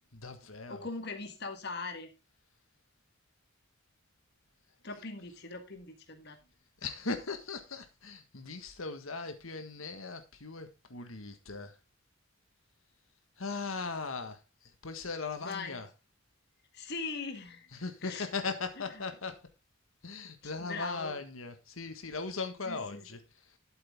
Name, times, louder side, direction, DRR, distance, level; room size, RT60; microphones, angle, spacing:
voice 1, 0.1-0.9 6.8-11.7 13.4-14.4 14.8-15.9 17.7-19.4 20.0-23.2, left 4 dB, 80° left, 1.7 m, -38 dB
voice 2, 0.7-2.1 4.8-6.4 15.4-15.8 16.7-17.7 18.0-18.3 18.9-19.0 20.4-21.2 22.6-23.0, left 3 dB, 55° left, 1.6 m, -40 dB
12.0 x 8.0 x 3.6 m
head